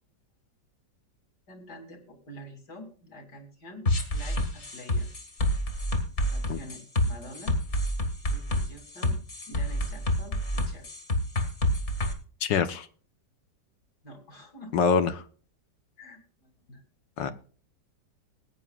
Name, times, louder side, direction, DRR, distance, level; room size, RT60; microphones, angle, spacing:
voice 1, 1.5-3.9 4.1-5.1 6.3-7.5 8.3-9.2 9.5-10.9 14.0-14.7 16.0-16.8, equal, 65° left, 3.5 m, -47 dB
sound 1, 3.9-12.1, left 1 dB, 40° left, 2.2 m, -27 dB
voice 2, 12.4-12.9 14.7-15.2 17.2-17.3, left 6 dB, 85° left, 1.7 m, -24 dB
20.0 x 9.3 x 2.4 m
omnidirectional pair, 1.9 m